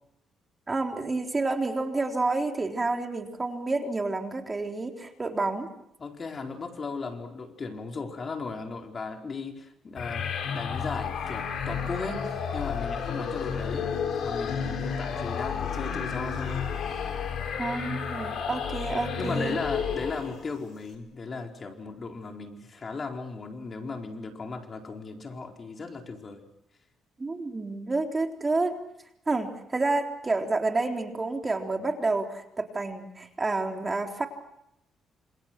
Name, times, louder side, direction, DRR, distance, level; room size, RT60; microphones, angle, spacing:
voice 1, 0.7-5.7 17.6-19.6 27.2-28.7 29.3-34.3, right 3 dB, 25° right, 3 dB, 3.7 m, -29 dB
voice 2, 6.0-13.9 14.2-16.7 19.2-26.4, left 4 dB, 40° left, 3 dB, 4.4 m, -36 dB
sound 1, 10.0-20.5, left 6 dB, 65° left, 5.7 m, -31 dB
29.5 x 27.5 x 6.1 m, 0.79 s
cardioid pair, 90°, 0 cm